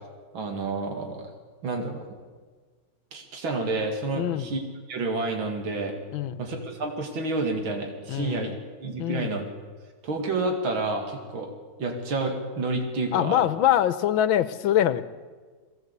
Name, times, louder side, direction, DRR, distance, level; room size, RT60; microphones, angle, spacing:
voice 1, 0.3-1.3 1.6-2.0 3.1-4.6 4.9-6.0 6.4-8.5 8.8-9.5 10.0-11.5 11.8-13.4, right 3 dB, 80° right, 3 dB, 3.1 m, -29 dB
voice 2, 4.2-4.5 6.1-6.4 8.1-8.6 9.0-9.3 13.1-15.0, left 11 dB, 80° left, 14 dB, 1.6 m, -24 dB
22.0 x 17.5 x 8.2 m, 1.5 s
omnidirectional pair, 2.2 m